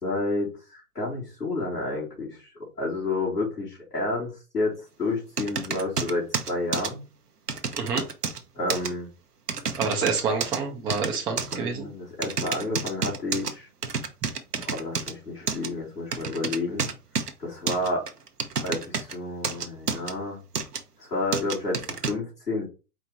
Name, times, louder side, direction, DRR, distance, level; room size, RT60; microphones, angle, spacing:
voice 1, 0.0-2.5 2.8-7.0 8.5-9.1 11.5-13.7 14.6-16.9 17.4-18.1 18.6-20.4 21.0-22.6, left 2 dB, 85° left, -6 dB, 2.6 m, -30 dB
sound 1, 5.4-6.9 7.5-8.4 8.7-8.9 9.5-10.6 10.9-11.6 12.2-13.5 13.8-15.1 15.5-15.7 16.1-17.3 17.7-19.1 19.4-20.1 20.5-20.8 21.3-22.1, right 5 dB, 85° right, 0.9 m, -29 dB
voice 2, 9.8-11.9, right 5 dB, 10° right, 0 dB, 0.5 m, -27 dB
4.7 x 2.9 x 3.8 m, 0.30 s
figure-of-eight pair, 115°, 45 cm